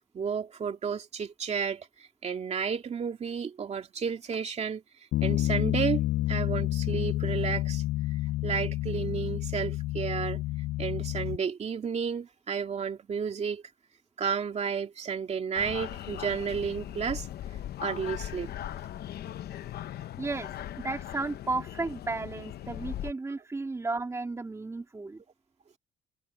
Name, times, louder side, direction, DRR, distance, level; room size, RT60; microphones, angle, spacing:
voice 1, 0.1-4.8 5.2-7.8 8.4-10.4 10.8-13.6 14.2-17.3 17.8-18.5, right 6 dB, 40° right, 2.6 m, -32 dB
Bass guitar, 5.1-11.4, left 16 dB, 85° left, 0.4 m, -29 dB
sound 1, 15.5-23.1, left 11 dB, 70° left, 0.9 m, -39 dB
voice 2, 20.2-20.5 20.8-25.2, right 3 dB, 15° right, 2.4 m, -33 dB
cardioid pair, 150°, 17 cm